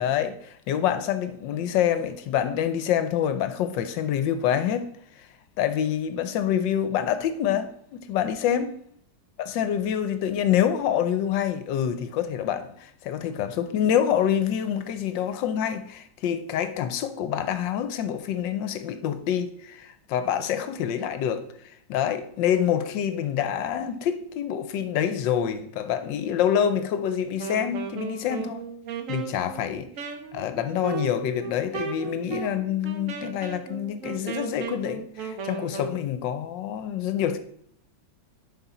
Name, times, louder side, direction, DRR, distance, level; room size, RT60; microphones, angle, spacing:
voice 1, 0.0-5.3 5.6-8.7 9.4-28.6 29.1-29.9 30.3-37.4, left 9 dB, 75° left, 1.3 m, -26 dB
Wind instrument woodwind instrument, 27.3-36.0, right 6 dB, 55° right, 0.9 m, -36 dB
10.5 x 4.3 x 4.2 m
omnidirectional pair, 2.1 m